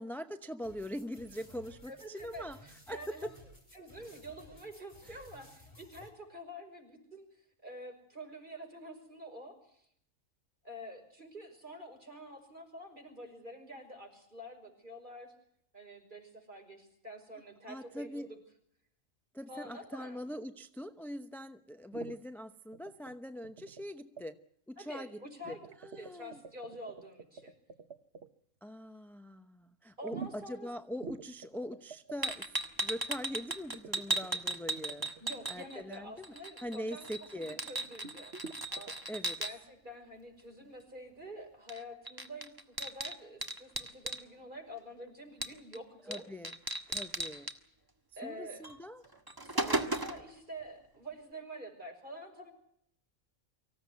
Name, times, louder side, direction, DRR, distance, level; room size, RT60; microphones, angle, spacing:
voice 1, 0.0-2.6 2.9-3.3 5.1-5.2 17.7-18.3 19.3-24.4 24.7-25.2 25.4-26.4 28.6-32.5 32.8-35.1 35.5-36.3 36.6-37.6 39.1-39.4 46.1-46.5 46.9-47.5 48.2-49.0, equal, ahead, 8 dB, 0.7 m, -42 dB
sound 1, 0.6-6.1, left 1 dB, 25° left, 4.5 m, -56 dB
voice 2, 1.8-3.3 3.7-7.3 7.6-9.9 10.6-15.3 15.7-18.4 19.5-20.2 24.8-25.6 26.0-27.5 30.0-30.7 35.2-38.3 38.7-39.0 39.4-46.2 48.2-48.6 49.4-52.5, equal, 35° right, 4 dB, 5.8 m, -47 dB
sound 2, 21.9-22.2 22.7-23.1 23.4-23.9 24.2-24.3 25.5-28.3 30.1-30.6 31.0-32.3 33.7-35.3 38.0-38.9, right 5 dB, 55° right, 1.3 m, -46 dB
Glass Bottles, 32.2-36.0 36.2-39.5 41.7-41.8 42.1-44.2 45.4-45.8 46.1-46.2 46.4-47.5 48.6-48.8 49.1-50.3, right 2 dB, 15° right, 1.7 m, -36 dB
25.0 x 16.0 x 9.4 m, 0.70 s
omnidirectional pair, 1.4 m